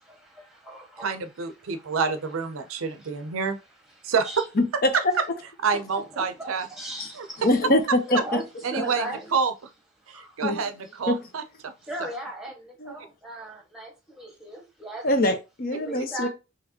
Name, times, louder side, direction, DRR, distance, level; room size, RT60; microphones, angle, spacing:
voice 1, 0.0-1.1 1.6-2.0 2.6-3.2 4.0-4.4 6.1-7.5 8.1-8.4 8.7-9.3 10.1-10.4 11.8-15.1 15.8-16.3, right 1 dB, ahead, 1.3 m, -38 dB
voice 2, 1.0-3.6 4.0-4.4 4.9-5.0 5.6-6.7 7.2-7.3 8.6-9.5 10.1-11.7 16.0-16.1, right 5 dB, 85° right, 0.5 m, -28 dB
voice 3, 4.6-5.0 7.0-7.1 7.4-8.4 10.4-10.6 11.1-11.2 12.8-13.0 15.0-16.3, left 1 dB, 45° left, 0.7 m, -23 dB
4.7 x 3.0 x 2.8 m
head